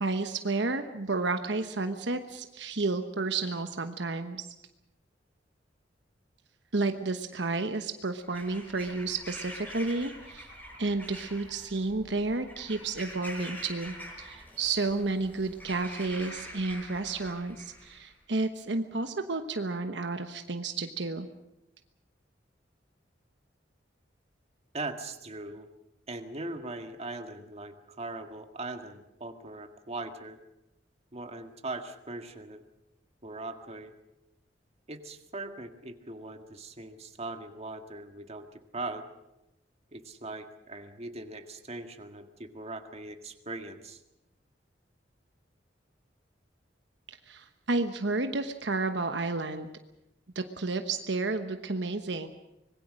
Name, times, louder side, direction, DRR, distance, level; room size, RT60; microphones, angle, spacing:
voice 1, 0.0-4.5 6.7-10.5 10.8-21.3 47.3-49.7 50.3-52.3, right 3 dB, 70° right, 7 dB, 1.2 m, -31 dB
Bird vocalization bird call bird song / Crow, 8.2-18.1, equal, 10° left, 7.0 m, -45 dB
voice 2, 24.7-25.7 26.1-30.4 31.1-32.6 33.2-33.9 34.9-39.1 39.9-44.0, right 2 dB, 35° right, 6 dB, 1.8 m, -40 dB
25.0 x 21.0 x 6.4 m, 0.92 s
head